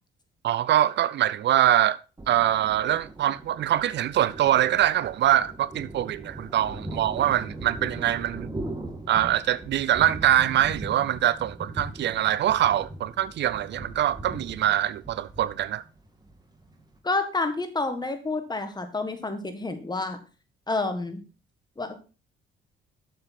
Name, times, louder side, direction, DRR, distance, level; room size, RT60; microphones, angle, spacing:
voice 1, 0.4-2.0 2.3-8.5 9.1-15.8, right 12 dB, 65° right, 0.4 m, -24 dB
Thunder, 2.2-17.0, right 2 dB, 20° right, 2.1 m, -40 dB
voice 2, 17.0-20.2 20.7-21.2 21.8-22.0, left 3 dB, 20° left, 1.7 m, -29 dB
7.5 x 7.0 x 4.3 m
cardioid pair, 90°, 20 cm